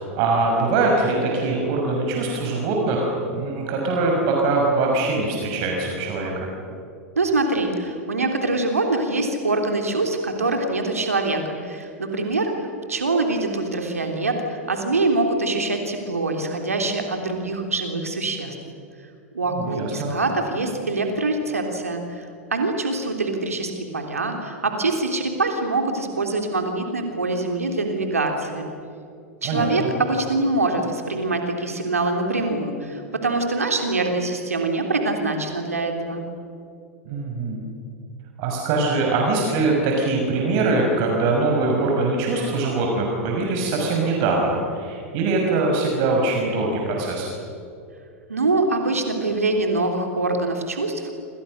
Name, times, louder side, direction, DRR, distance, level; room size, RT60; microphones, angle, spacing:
voice 1, 0.0-6.5 19.5-20.1 29.4-29.9 37.1-37.6 38.4-47.3, right 3 dB, 50° right, 0 dB, 6.1 m, -22 dB
voice 2, 7.1-18.5 19.3-22.2 22.5-28.7 29.4-36.2 48.3-51.1, right 2 dB, 85° right, 3 dB, 3.3 m, -24 dB
28.5 x 27.0 x 6.6 m, 2.5 s
figure-of-eight pair, 90°, 8 cm